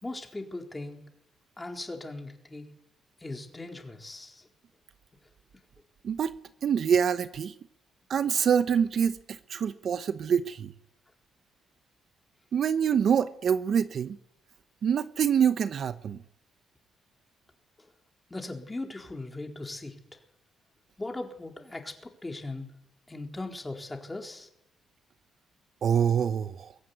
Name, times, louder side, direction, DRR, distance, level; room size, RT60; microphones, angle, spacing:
voice 1, 0.0-1.0 1.6-2.7 3.2-4.4 18.3-20.0 21.0-22.7 23.1-24.5, left 2 dB, 15° left, 4.1 m, -39 dB
voice 2, 6.6-7.5 8.1-10.7 12.5-14.2 14.8-16.2 25.8-26.7, right 7 dB, 55° right, 0.9 m, -26 dB
23.0 x 16.0 x 9.7 m
cardioid pair, 100°, 0 cm